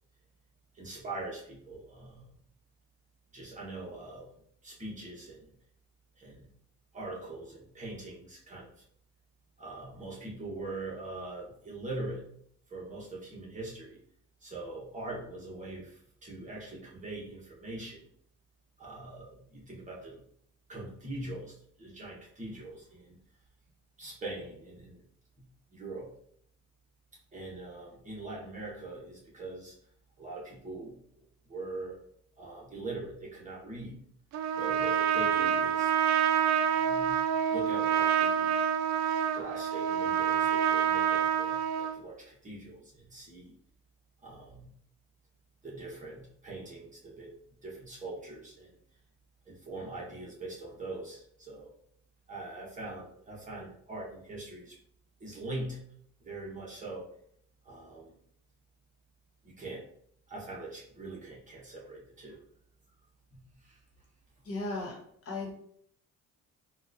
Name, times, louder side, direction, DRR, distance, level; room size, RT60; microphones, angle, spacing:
voice 1, 0.7-2.3 3.3-4.3 4.6-5.5 6.2-6.5 6.9-8.7 9.6-12.3 12.7-14.0 14.4-18.1 18.8-20.2 20.7-23.2 24.0-25.0 25.4-25.5 25.7-26.1 27.3-29.7 30.2-31.0 31.4-32.0 32.4-34.0 34.6-35.9 36.6-37.2 37.5-38.6 39.3-43.5 44.2-44.7 45.6-47.4 47.6-48.8 49.5-51.7 52.3-54.8 55.2-55.8 56.2-57.1 57.6-58.1 59.4-59.8 60.3-62.4 63.3-63.8, right 2 dB, 25° right, -4 dB, 1.1 m, -42 dB
Trumpet, 34.3-42.0, right 8 dB, 65° right, 0.4 m, -27 dB
voice 2, 64.5-65.0 65.3-65.5, left 2 dB, 50° left, -1 dB, 1.1 m, -35 dB
4.0 x 2.4 x 2.5 m, 0.65 s
cardioid pair, 115°, 30 cm